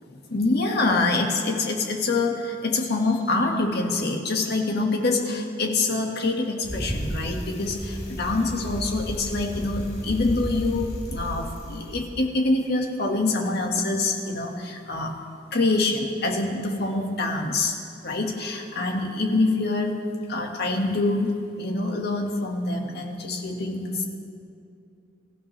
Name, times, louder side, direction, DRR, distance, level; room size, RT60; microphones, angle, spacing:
voice 1, 0.3-15.2 15.5-17.8 18.0-20.0 20.3-24.0, left 2 dB, 55° left, 1 dB, 1.9 m, -25 dB
Bicycle, 6.6-12.1, equal, 35° left, 3.2 m, -33 dB
25.5 x 15.0 x 3.4 m, 2.5 s
head